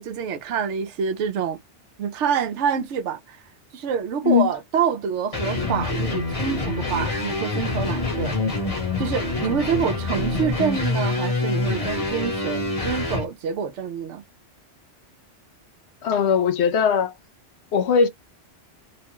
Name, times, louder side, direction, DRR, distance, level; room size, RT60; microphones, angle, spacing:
voice 1, 0.0-1.6 2.0-3.4 3.7-8.4 9.0-14.2, right 7 dB, 80° right, 0.9 m, -26 dB
sound 1, 5.3-13.3, left 2 dB, 30° left, 1.0 m, -26 dB
voice 2, 16.0-17.1 17.7-18.1, left 6 dB, 70° left, 0.9 m, -19 dB
3.1 x 2.2 x 2.9 m
omnidirectional pair, 1.2 m